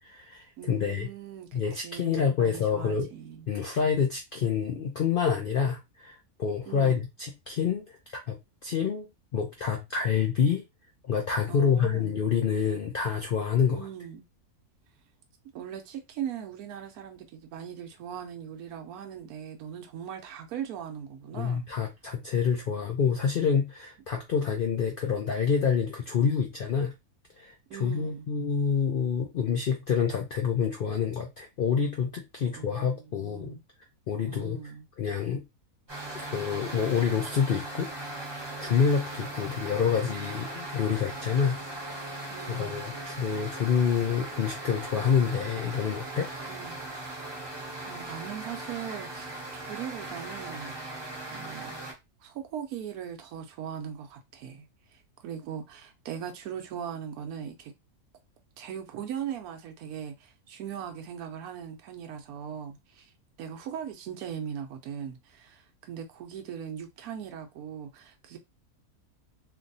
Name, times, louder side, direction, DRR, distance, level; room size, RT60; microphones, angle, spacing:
voice 1, 0.0-1.1 1.5-3.1 3.5-8.0 8.3-8.4 8.6-10.6 11.0-13.8 21.3-26.9 27.4-33.5 34.1-35.4 36.1-37.9 38.6-41.6 42.5-46.3, left 7 dB, 75° left, 0.5 m, -27 dB
voice 2, 0.6-3.5 6.7-7.0 11.5-12.2 13.7-14.2 15.5-21.6 27.7-28.2 32.4-33.6 34.2-34.8 42.3-42.9 46.5-46.8 47.4-50.7 51.3-51.8 52.2-54.6 54.9-57.7 58.6-63.1 63.4-68.4, right 8 dB, 80° right, 1.1 m, -39 dB
sound 1, 35.9-51.9, right 2 dB, 20° right, 0.9 m, -39 dB
3.0 x 2.6 x 2.6 m
omnidirectional pair, 1.5 m